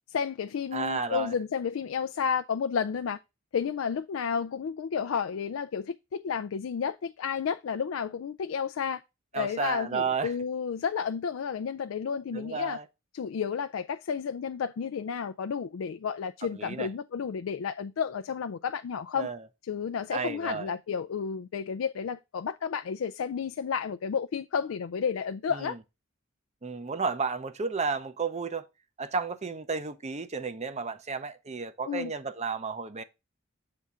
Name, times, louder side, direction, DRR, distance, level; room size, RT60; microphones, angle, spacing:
voice 1, 0.1-3.2 3.5-9.0 9.3-12.8 13.1-19.3 19.7-25.8 31.8-32.1, left 6 dB, 75° left, 0.4 m, -31 dB
voice 2, 0.7-1.3 9.3-10.3 12.3-12.8 16.5-16.9 19.2-19.4 20.1-20.7 25.5-25.8 26.6-28.7 29.0-33.0, right 5 dB, 35° right, 0.7 m, -32 dB
7.6 x 3.6 x 5.5 m
head